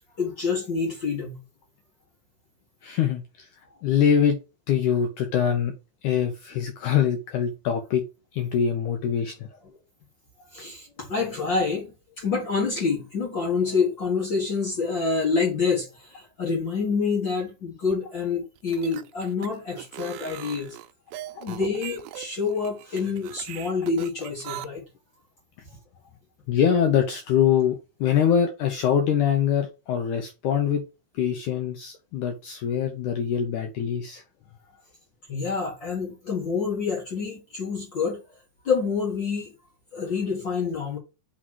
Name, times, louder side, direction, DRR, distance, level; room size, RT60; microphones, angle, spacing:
voice 1, 0.2-1.4 10.5-20.8 21.4-24.8 35.3-38.2 38.6-39.5 39.9-41.0, left 5 dB, 55° left, 1.3 m, -27 dB
voice 2, 2.8-3.2 3.8-4.4 4.7-5.7 6.0-8.0 8.3-9.3 21.4-21.5 26.5-30.8 31.2-34.2, left 8 dB, 75° left, 1.9 m, -23 dB
sound 1, 18.6-24.7, right 14 dB, 85° right, 1.9 m, -40 dB
5.9 x 3.8 x 6.0 m
omnidirectional pair, 4.6 m